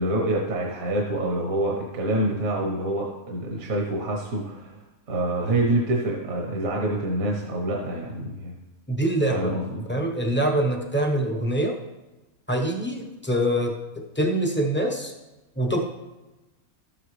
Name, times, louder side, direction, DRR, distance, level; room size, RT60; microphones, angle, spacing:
voice 1, 0.0-4.7 5.1-8.5 9.3-9.8, right 1 dB, 70° right, -1 dB, 1.5 m, -26 dB
voice 2, 8.9-9.5 9.9-11.7 12.5-15.1 15.6-15.8, right 1 dB, 10° left, 1 dB, 0.7 m, -24 dB
12.5 x 7.8 x 3.2 m, 1.1 s
omnidirectional pair, 1.5 m